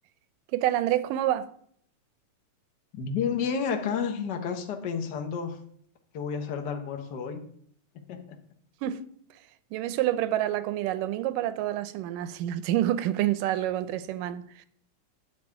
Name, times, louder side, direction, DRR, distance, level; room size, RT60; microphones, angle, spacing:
voice 1, 0.5-1.5 8.8-9.0 9.7-14.7, right 13 dB, 85° right, 2.3 m, -28 dB
voice 2, 2.9-5.6 6.1-7.4 7.9-8.4, left 6 dB, 55° left, 1.2 m, -31 dB
12.0 x 4.7 x 8.5 m
omnidirectional pair, 3.7 m